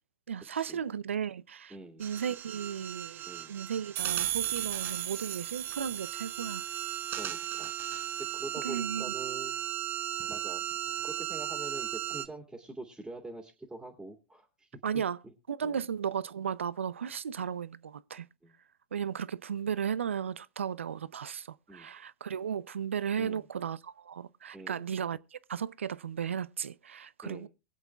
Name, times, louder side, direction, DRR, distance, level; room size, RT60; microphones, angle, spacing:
voice 1, 0.3-6.7 8.6-9.1 14.8-15.2 15.5-18.2 18.9-27.5, right 8 dB, 90° right, 0.5 m, -35 dB
voice 2, 1.7-2.1 3.3-3.6 7.1-7.7 8.2-9.6 10.3-10.6 11.0-14.7 14.9-15.0 15.6-15.8 18.4-18.5 21.7-21.9 23.2-23.4 24.5-24.9 27.2-27.5, right 2 dB, 5° right, 2.2 m, -44 dB
sound 1, 2.0-12.3, right 11 dB, 30° right, 0.8 m, -37 dB
sound 2, 4.0-7.5, right 12 dB, 50° right, 1.8 m, -36 dB
23.0 x 8.1 x 2.3 m
hypercardioid pair, 105°, 7 cm